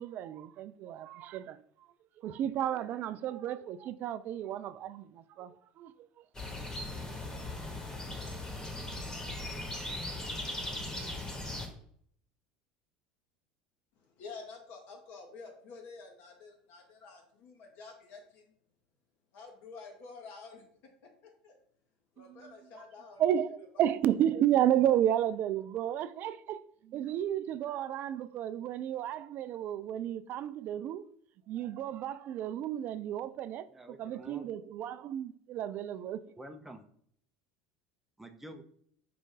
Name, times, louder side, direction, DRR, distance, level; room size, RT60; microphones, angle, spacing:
voice 1, 0.0-1.6 2.2-5.5 5.8-5.9 22.3-22.4 23.2-26.6 26.9-31.0 31.5-33.6 34.0-36.2, right 11 dB, 50° right, 0.3 m, -32 dB
sound 1, 6.3-11.7, left 1 dB, 15° left, 1.2 m, -39 dB
voice 2, 14.0-18.5 19.3-20.6 21.4-21.6 22.2-23.2, left 4 dB, 60° left, 1.0 m, -49 dB
voice 3, 33.7-34.4 36.4-36.8 38.2-38.6, right 1 dB, 5° right, 0.6 m, -48 dB
4.8 x 2.6 x 3.7 m
hypercardioid pair, 80°, 4 cm